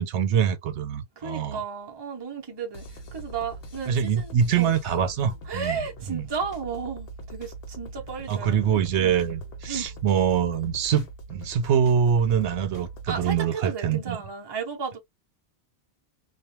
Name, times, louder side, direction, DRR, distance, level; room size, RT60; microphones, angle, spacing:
voice 1, 0.0-1.6 3.9-5.8 6.1-6.3 8.3-14.2, right 8 dB, 80° right, 0.9 m, -24 dB
voice 2, 1.2-2.8 3.1-4.7 5.5-9.2 9.7-9.9 13.1-15.0, right 5 dB, 25° right, 0.6 m, -34 dB
sound 1, 2.7-13.4, right 2 dB, 60° left, 0.9 m, -42 dB
2.4 x 2.2 x 2.9 m
omnidirectional pair, 1.2 m